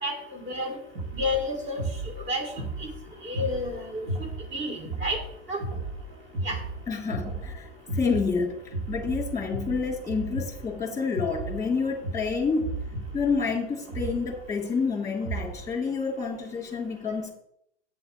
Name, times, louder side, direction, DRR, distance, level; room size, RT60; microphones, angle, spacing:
voice 1, 0.0-0.8 1.1-2.5 2.8-2.9 3.2-4.1 4.5-5.2 5.5-5.6 6.4-6.6, left 1 dB, 30° right, 4 dB, 2.8 m, -30 dB
sound 1, 0.9-15.7, right 2 dB, 65° right, 2.0 m, -36 dB
voice 2, 6.9-12.7 13.1-17.3, left 5 dB, 10° left, 1 dB, 2.5 m, -28 dB
8.4 x 6.9 x 4.4 m, 0.74 s
hypercardioid pair, 95°, 36 cm